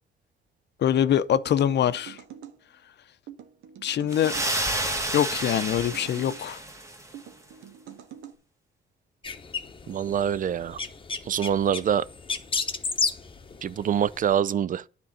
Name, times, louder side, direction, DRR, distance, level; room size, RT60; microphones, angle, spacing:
voice 1, 0.8-2.2 3.8-4.3 5.1-6.6, left 10 dB, 60° left, 0.6 m, -24 dB
sound 1, 1.3-2.6 3.3-4.5 5.2-6.4 7.1-8.3, right 9 dB, 85° right, 1.1 m, -45 dB
sound 2, 4.1-7.1, right 1 dB, 15° right, 1.4 m, -30 dB
sound 3, 9.2-14.3, left 4 dB, 25° left, 0.9 m, -32 dB
voice 2, 9.9-10.8 11.3-12.0 13.6-14.8, right 9 dB, 45° right, 0.4 m, -25 dB
10.0 x 3.8 x 7.2 m
cardioid pair, 90°, 20 cm